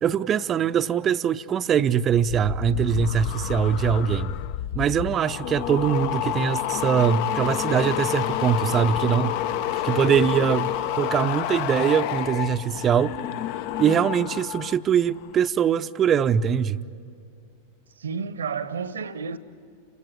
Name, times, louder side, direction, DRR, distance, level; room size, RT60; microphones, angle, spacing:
voice 1, 0.0-4.4 4.7-9.4 9.8-10.7 11.0-13.1 13.8-16.8, right 8 dB, 25° right, 0.6 m, -22 dB
sound 1, 2.1-14.8 15.1-15.5, left 12 dB, 45° left, 0.5 m, -29 dB
voice 2, 18.0-19.4, right 5 dB, 70° right, 0.9 m, -31 dB
28.5 x 16.5 x 9.5 m
figure-of-eight pair, 90°, 0 cm